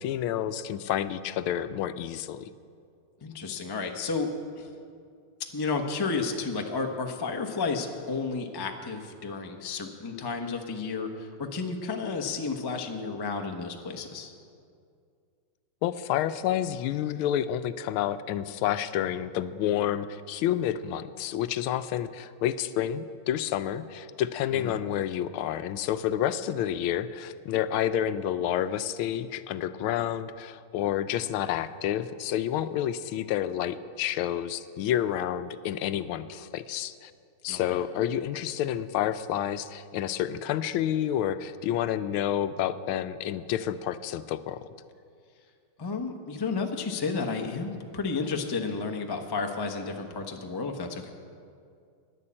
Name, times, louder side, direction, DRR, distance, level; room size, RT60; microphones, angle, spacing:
voice 1, 0.0-2.5 15.8-37.1 37.4-44.6, left 11 dB, 80° left, 12 dB, 1.4 m, -29 dB
voice 2, 3.2-4.3 4.6-4.7 5.4-14.3 24.5-24.8 37.5-37.8 45.8-51.1, left 4 dB, 35° left, 4 dB, 0.3 m, -32 dB
11.0 x 11.0 x 8.7 m, 2.3 s
omnidirectional pair, 2.3 m